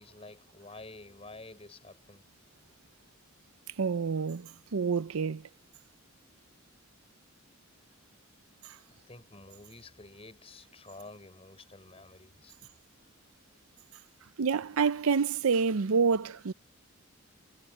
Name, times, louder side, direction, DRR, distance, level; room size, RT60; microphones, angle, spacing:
voice 1, 0.0-2.3 8.9-12.7, left 2 dB, 30° left, 5.8 m, -50 dB
voice 2, 3.8-5.4 14.4-16.5, right 5 dB, 90° right, 0.6 m, -28 dB
head